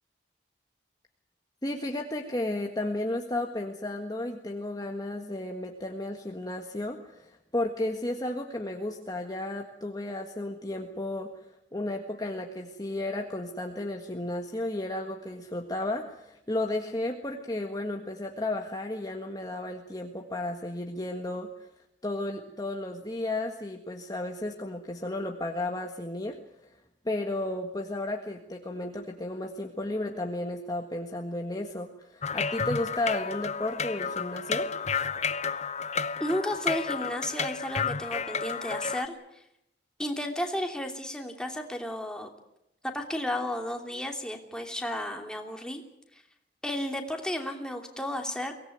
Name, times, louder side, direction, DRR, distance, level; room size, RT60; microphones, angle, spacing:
voice 1, 1.6-11.3 11.7-21.7 22.0-26.7 27.0-34.7, left 1 dB, 20° left, 3 dB, 1.6 m, -33 dB
sound 1, 32.2-39.1, left 5 dB, 40° left, 0.9 m, -31 dB
voice 2, 36.2-39.4 40.0-42.3 42.8-45.8 46.1-46.2 46.6-48.5, left 1 dB, 5° left, 3 dB, 2.9 m, -33 dB
23.5 x 18.5 x 9.3 m, 0.82 s
head